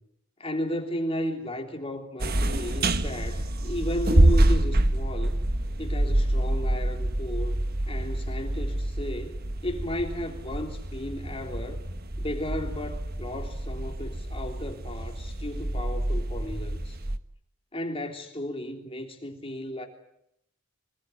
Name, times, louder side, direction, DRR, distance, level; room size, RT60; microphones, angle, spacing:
voice 1, 0.4-5.4 5.8-7.6 7.9-11.8 12.2-17.0 17.7-19.9, left 1 dB, 25° left, 3 dB, 3.3 m, -34 dB
sound 1, 2.2-17.2, right 1 dB, 45° right, 1.3 m, -27 dB
27.0 x 19.5 x 9.7 m, 0.78 s
head